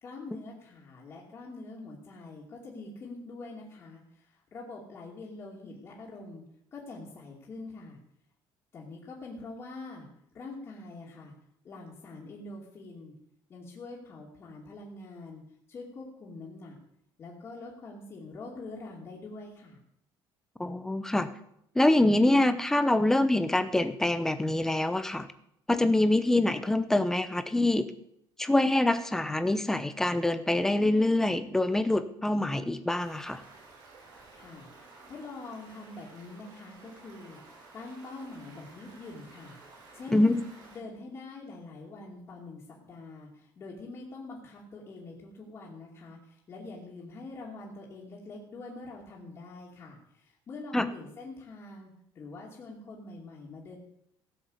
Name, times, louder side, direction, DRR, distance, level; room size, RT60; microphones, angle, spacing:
voice 1, 0.0-6.4 6.7-8.0 8.7-10.1 10.3-11.3 11.6-13.1 13.5-15.4 15.7-16.8 17.2-19.8 34.3-39.6 39.9-40.4 40.7-53.8, left 3 dB, 30° left, -5 dB, 2.6 m, -44 dB
voice 2, 20.6-21.3 21.7-25.3 25.7-27.9 28.4-33.4 40.1-40.4 50.7-50.9, left 1 dB, 5° left, 11 dB, 0.7 m, -25 dB
Stream, 33.0-40.8, right 3 dB, 45° right, 6.2 m, -53 dB
16.5 x 6.9 x 8.0 m, 0.74 s
cardioid pair, 180°, 9 cm